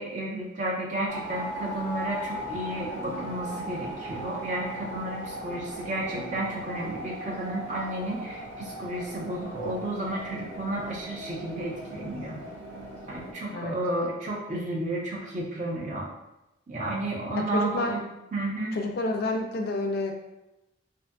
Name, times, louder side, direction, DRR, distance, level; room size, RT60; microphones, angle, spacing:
voice 1, 0.0-12.4 13.1-16.1 16.7-18.0 18.3-18.8, right 1 dB, 40° right, -2 dB, 0.5 m, -32 dB
sound 1, 1.1-13.3, equal, 85° right, 0.8 m, -38 dB
Speech, 2.3-4.1 5.4-7.2, right 1 dB, 60° right, 1.1 m, -47 dB
voice 2, 17.3-18.0 18.7-20.1, left 2 dB, 50° left, 3 dB, 0.3 m, -29 dB
2.6 x 2.5 x 2.2 m, 0.95 s
head